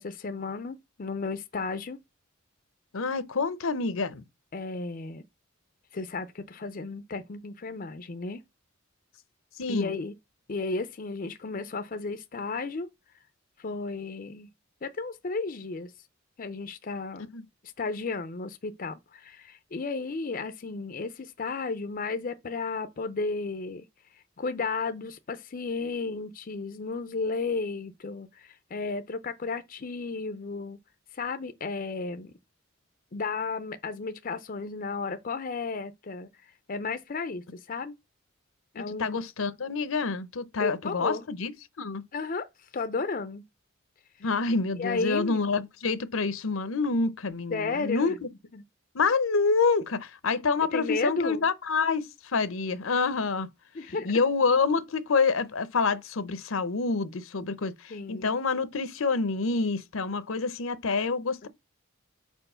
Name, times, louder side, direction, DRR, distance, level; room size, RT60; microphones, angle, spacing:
voice 1, 0.0-2.0 4.5-5.2 5.9-8.4 9.7-10.1 10.5-12.9 13.6-14.5 14.8-15.9 16.4-17.3 17.8-23.8 24.4-30.8 31.1-32.3 33.1-36.3 36.7-37.9 38.7-39.2 40.6-41.3 42.1-42.4 42.7-43.4 44.7-45.5 47.5-48.2 48.5-48.6 50.7-51.4 53.7-54.1 57.9-58.3 61.4-61.5, left 4 dB, 40° left, 0.5 m, -33 dB
voice 2, 2.9-4.2 9.6-9.9 17.3-17.4 39.0-41.5 41.8-42.0 44.2-48.1 48.9-50.0 50.2-52.1 52.3-53.5 54.0-57.7 58.1-61.5, left 4 dB, 75° left, 0.7 m, -27 dB
4.7 x 4.5 x 5.5 m
head